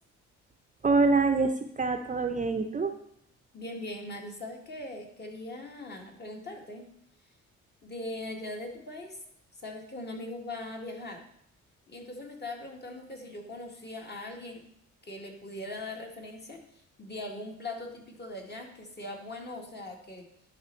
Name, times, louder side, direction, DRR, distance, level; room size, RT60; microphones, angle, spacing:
voice 1, 0.8-2.9, right 3 dB, 25° right, 5 dB, 0.6 m, -25 dB
voice 2, 3.5-6.9 7.8-9.2 9.6-11.2 11.9-14.6 15.0-20.3, left 2 dB, 35° left, 1 dB, 1.9 m, -40 dB
11.0 x 4.4 x 4.5 m, 0.71 s
cardioid pair, 90°, 30 cm